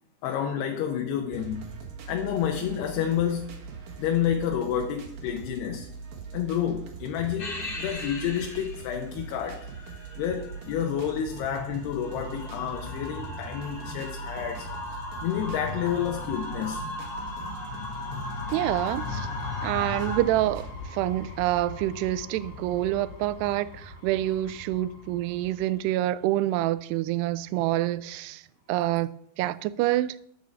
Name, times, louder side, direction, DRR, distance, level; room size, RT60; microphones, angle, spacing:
voice 1, 0.2-1.7 2.1-3.6 4.0-5.9 6.3-9.7 10.2-14.7 15.2-16.8, left 9 dB, 80° left, 3.1 m, -29 dB
sound 1, 1.3-20.7, right 5 dB, 65° right, 3.0 m, -41 dB
sound 2, 7.4-20.2, left 2 dB, 35° left, 2.2 m, -37 dB
sound 3, 18.1-25.8, left 4 dB, 55° left, 2.5 m, -41 dB
voice 2, 18.5-19.3 19.6-28.4 28.7-29.1 29.4-30.2, right 15 dB, 85° right, 2.7 m, -27 dB
10.5 x 8.4 x 7.0 m
omnidirectional pair, 4.7 m